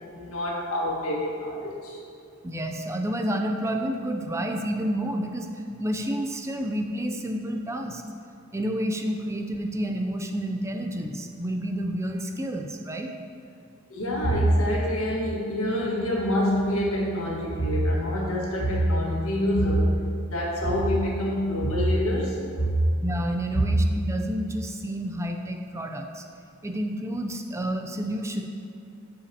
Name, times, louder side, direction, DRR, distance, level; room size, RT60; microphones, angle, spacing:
voice 1, 0.1-2.0 13.9-19.9 20.2-22.8 23.5-23.7, equal, 85° left, -3 dB, 1.6 m, -25 dB
voice 2, 2.4-5.5 5.8-8.0 8.5-13.1 23.0-26.2 26.6-28.4, right 1 dB, 15° right, 3 dB, 0.4 m, -29 dB
13.5 x 5.1 x 2.8 m, 2.5 s
head